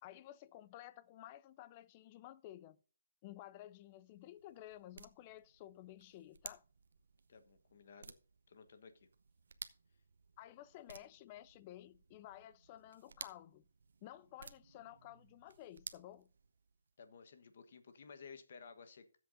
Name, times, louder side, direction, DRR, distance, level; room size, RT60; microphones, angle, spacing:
voice 1, 0.0-2.8 3.2-6.6 10.4-13.6 14.0-16.3, left 14 dB, 20° left, 0.4 m, -54 dB
sound 1, 3.7-16.9, right 5 dB, 65° right, 0.8 m, -57 dB
voice 2, 7.3-8.2 8.5-9.1 17.0-19.2, left 5 dB, 45° left, 1.2 m, -56 dB
15.5 x 7.9 x 2.6 m
hypercardioid pair, 175°, 0 cm